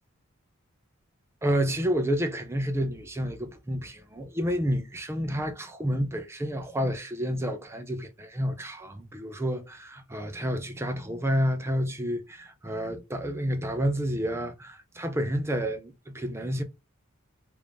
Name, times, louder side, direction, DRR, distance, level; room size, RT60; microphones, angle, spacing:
voice 1, 1.4-16.6, equal, 10° right, 0.5 m, -29 dB
3.1 x 2.6 x 3.3 m
head